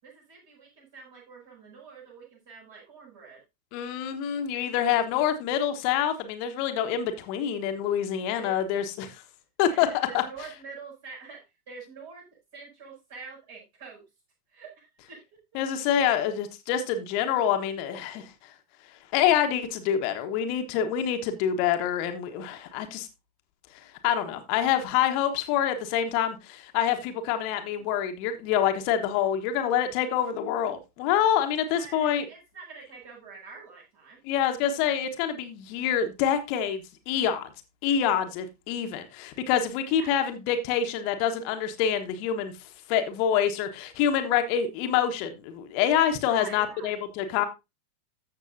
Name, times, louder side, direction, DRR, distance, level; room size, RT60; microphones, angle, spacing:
voice 1, 0.0-3.4 8.3-8.5 9.7-12.3 12.5-14.0 14.5-15.4 31.6-34.2 39.9-40.2 46.2-47.0, right 4 dB, 55° right, -2 dB, 6.6 m, -46 dB
voice 2, 3.7-9.2 9.6-9.9 10.1-10.2 15.5-18.5 19.1-23.1 23.7-32.2 34.2-37.5 37.8-42.5 42.9-47.4, left 9 dB, 45° left, 7 dB, 1.2 m, -26 dB
14.0 x 6.7 x 2.7 m, 0.25 s
figure-of-eight pair, 90°, 0 cm